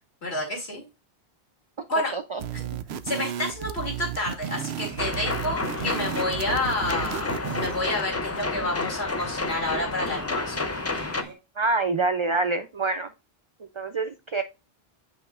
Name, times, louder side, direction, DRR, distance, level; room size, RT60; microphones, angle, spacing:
voice 1, 0.2-0.8 1.9-2.1 2.5-2.6 3.0-10.7, left 2 dB, 90° left, 0 dB, 2.7 m, -29 dB
sound 1, 2.4-7.9, right 9 dB, 85° right, 0.9 m, -34 dB
sound 2, 4.8-11.3, right 2 dB, 25° right, 1.8 m, -43 dB
sound 3, 5.0-11.2, left 3 dB, 25° left, 0.3 m, -30 dB
voice 2, 11.6-13.1 13.8-14.4, right 3 dB, 45° right, 9 dB, 0.4 m, -26 dB
7.9 x 6.4 x 2.4 m, 0.27 s
omnidirectional pair, 1.0 m